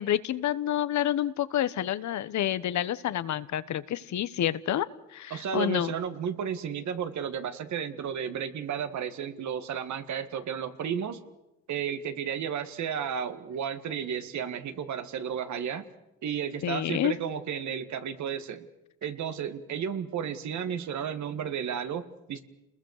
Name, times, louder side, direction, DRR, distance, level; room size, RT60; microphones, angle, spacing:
voice 1, 0.0-4.9 5.1-5.9 16.6-17.1, left 11 dB, 70° left, 15 dB, 1.1 m, -28 dB
voice 2, 5.3-11.2 11.7-15.9 16.2-18.7 19.0-22.4, right 8 dB, 70° right, 10 dB, 2.0 m, -33 dB
29.5 x 20.5 x 6.6 m, 0.93 s
cardioid pair, 90°, 30 cm